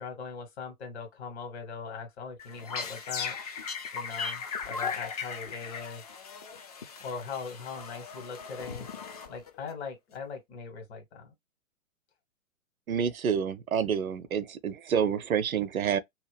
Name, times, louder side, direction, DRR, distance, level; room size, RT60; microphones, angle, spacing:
voice 1, 0.0-3.4 3.9-6.0 7.0-8.9 9.3-11.3, left 5 dB, 50° left, 1.6 m, -40 dB
sound 1, 2.4-9.7, left 5 dB, 30° left, 0.4 m, -38 dB
voice 2, 12.9-16.0, right 7 dB, 75° right, 0.6 m, -28 dB
2.8 x 2.2 x 3.3 m
figure-of-eight pair, 115°, 42 cm